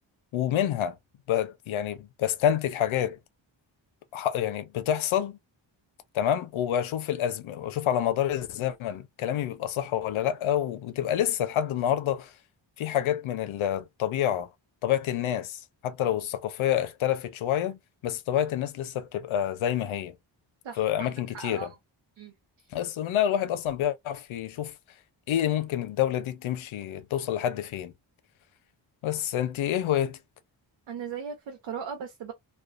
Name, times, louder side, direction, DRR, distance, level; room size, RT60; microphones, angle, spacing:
voice 1, 0.3-1.0 1.3-3.2 4.1-5.4 6.1-12.3 12.8-14.5 14.8-20.1 20.8-21.7 22.7-24.7 25.3-27.9 29.0-30.2, left 10 dB, 85° left, 0.6 m, -28 dB
voice 2, 20.6-21.7 22.2-22.7 30.9-32.3, right 7 dB, 80° right, 0.7 m, -38 dB
2.4 x 2.2 x 2.3 m
cardioid pair, 70°, 47 cm